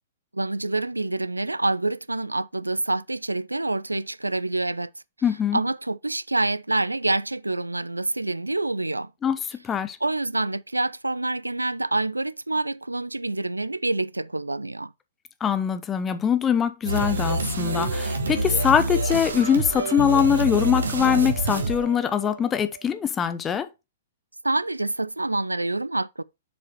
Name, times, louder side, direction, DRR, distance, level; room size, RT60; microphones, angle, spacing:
voice 1, 0.3-4.9 5.5-9.1 10.0-14.9 24.4-26.2, right 2 dB, 80° right, 0.3 m, -27 dB
voice 2, 5.2-5.6 9.2-10.0 15.4-23.7, left 8 dB, 15° left, 0.7 m, -23 dB
sound 1, 16.8-22.6, right 2 dB, 65° right, 1.3 m, -27 dB
7.0 x 4.9 x 4.4 m
figure-of-eight pair, 115°, 0 cm